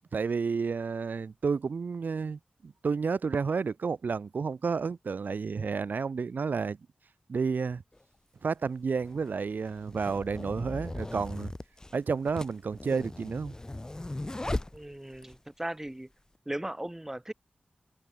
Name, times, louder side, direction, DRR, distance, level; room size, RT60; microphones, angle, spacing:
voice 1, 0.1-6.8 7.3-7.8 8.4-11.5 11.9-13.5, right 5 dB, 90° right, 2.6 m, -31 dB
sound 1, 7.9-8.0 9.0-15.4, left 2 dB, 25° left, 6.5 m, -38 dB
voice 2, 14.7-16.1 16.5-17.3, right 1 dB, 15° right, 4.5 m, -37 dB
wide cardioid pair, 105°, 3 cm